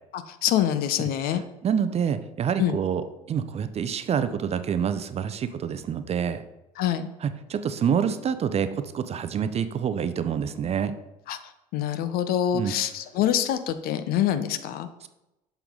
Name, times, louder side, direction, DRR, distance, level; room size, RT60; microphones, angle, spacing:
voice 1, 0.1-1.4 2.6-2.8 6.8-7.1 11.3-11.4 11.7-14.9, left 10 dB, 55° left, 11 dB, 0.6 m, -25 dB
voice 2, 1.6-6.4 7.2-10.9 12.5-12.7, right 7 dB, 35° right, 11 dB, 0.6 m, -27 dB
7.0 x 5.7 x 3.7 m, 0.93 s
figure-of-eight pair, 60°, 19 cm